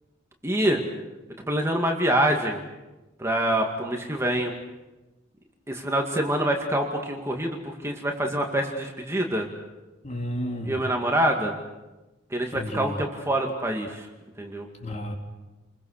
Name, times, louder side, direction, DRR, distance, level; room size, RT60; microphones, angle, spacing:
voice 1, 0.4-0.8 1.4-2.6 3.2-4.5 5.7-9.5 10.7-11.5 12.3-14.1 14.4-14.7, right 1 dB, 15° right, 2 dB, 2.1 m, -25 dB
voice 2, 10.0-10.8 12.5-13.0 14.8-15.1, equal, 35° left, 1 dB, 3.9 m, -32 dB
29.5 x 22.5 x 6.6 m, 1.1 s
head